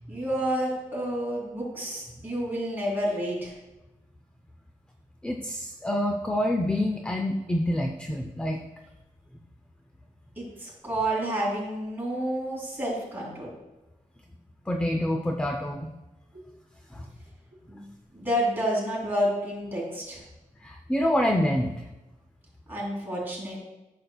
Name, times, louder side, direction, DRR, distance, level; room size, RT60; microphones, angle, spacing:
voice 1, 0.1-3.5 10.4-13.5 16.3-16.4 17.7-17.9 18.1-20.2 22.7-23.6, equal, 15° right, -5 dB, 2.8 m, -29 dB
voice 2, 5.2-8.6 14.7-15.9 16.9-17.1 20.6-21.7, left 1 dB, 10° left, 4 dB, 0.4 m, -27 dB
13.0 x 6.6 x 2.3 m, 1.0 s
wide cardioid pair, 175°, 13 cm